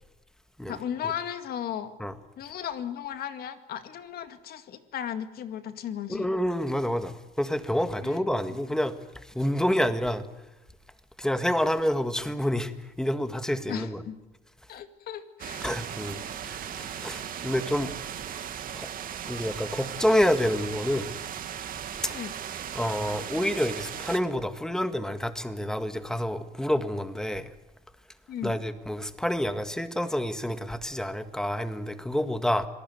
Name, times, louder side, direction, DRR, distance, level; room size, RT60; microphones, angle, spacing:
voice 1, 0.6-1.9 2.4-6.3 8.0-8.2 8.5-8.6 13.7-14.2 14.7-15.7 22.1-22.3 28.3-28.6, left 9 dB, 65° left, 2.1 m, -36 dB
voice 2, 6.1-7.1 7.4-9.0 9.4-10.2 11.2-12.7 13.0-14.0 15.6-16.2 16.8-17.9 18.7-18.9 19.3-21.1 22.0-22.1 22.7-27.5 28.4-32.7, equal, 5° left, 1.8 m, -28 dB
sound 1, 15.4-24.2, right 9 dB, 55° right, 2.4 m, -37 dB
26.0 x 18.5 x 9.4 m
cardioid pair, 110°, 17 cm